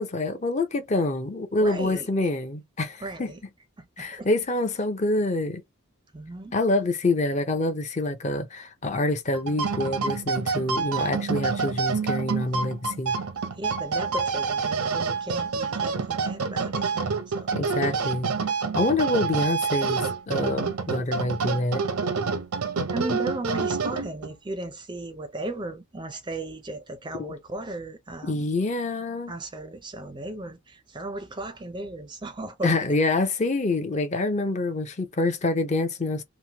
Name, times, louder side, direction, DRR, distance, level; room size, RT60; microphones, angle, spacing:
voice 1, 0.0-3.3 4.0-5.6 6.5-13.1 17.5-18.4 18.8-21.8 27.2-27.3 28.2-29.4 32.6-36.2, left 2 dB, 30° left, 0.5 m, -26 dB
voice 2, 1.6-2.1 3.0-3.4 3.8-4.3 6.1-6.5 13.6-17.6 22.9-28.5 29.3-32.8, right 2 dB, 20° right, 0.4 m, -36 dB
sound 1, 9.3-24.3, right 5 dB, 85° right, 0.6 m, -27 dB
2.9 x 2.1 x 2.8 m
head